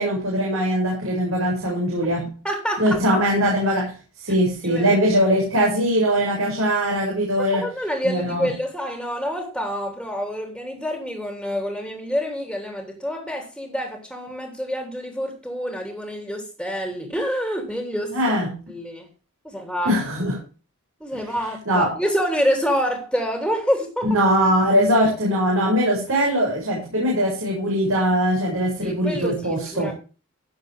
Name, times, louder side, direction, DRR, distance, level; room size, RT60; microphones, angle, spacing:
voice 1, 0.0-2.3 2.8-7.7 8.0-8.5 18.1-18.6 19.8-20.4 21.7-21.9 24.0-29.9, equal, 75° right, 7.5 m, -21 dB
voice 2, 2.4-3.2 4.3-4.4 4.6-5.0 7.5-18.2 18.7-19.1 19.4-20.0 21.0-24.2 28.8-29.9, equal, ahead, 3.0 m, -27 dB
17.5 x 7.6 x 3.7 m
head